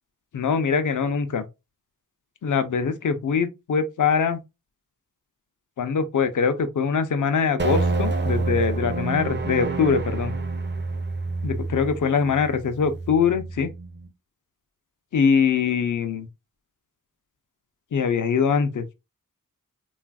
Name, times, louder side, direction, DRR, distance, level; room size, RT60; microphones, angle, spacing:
voice 1, 0.3-1.5 2.4-4.4 5.8-10.3 11.4-13.7 15.1-16.3 17.9-18.9, left 6 dB, 60° left, 0.5 m, -23 dB
sound 1, 7.6-14.1, right 3 dB, 30° right, 0.5 m, -28 dB
3.3 x 2.4 x 2.3 m
wide cardioid pair, 65°, 35 cm